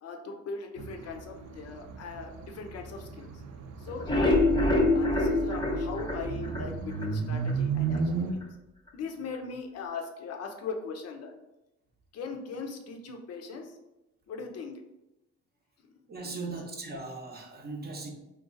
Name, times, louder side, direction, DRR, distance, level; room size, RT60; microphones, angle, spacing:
voice 1, 0.0-3.3 3.8-4.4 4.9-8.5 8.9-11.3 12.1-13.7 14.3-14.8 16.2-16.6, left 4 dB, 55° left, 4 dB, 0.6 m, -39 dB
sound 1, 0.8-8.3, right 5 dB, 70° right, 0.5 m, -35 dB
sound 2, 3.9-7.1 7.5-7.6 7.9-8.0 8.4-8.5, left 2 dB, 15° left, 0.6 m, -25 dB
voice 2, 16.1-18.1, right 3 dB, 30° right, 1 dB, 0.7 m, -38 dB
2.5 x 2.3 x 3.8 m, 0.95 s
cardioid pair, 90°, 30 cm